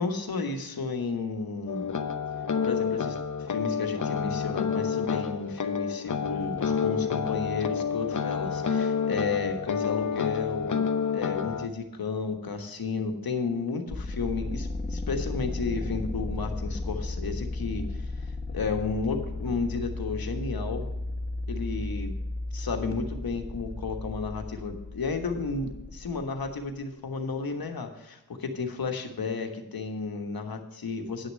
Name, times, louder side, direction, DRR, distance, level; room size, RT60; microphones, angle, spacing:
voice 1, 0.0-1.9 2.6-3.2 3.5-10.8 11.1-20.9 21.5-22.1 22.5-31.3, left 4 dB, 80° left, 5 dB, 1.3 m, -32 dB
sound 1, 1.7-11.7, left 6 dB, 60° left, 0.8 m, -29 dB
sound 2, 13.9-26.6, left 2 dB, 30° left, 1.2 m, -34 dB
10.0 x 6.6 x 6.5 m, 0.90 s
wide cardioid pair, 65°, 35 cm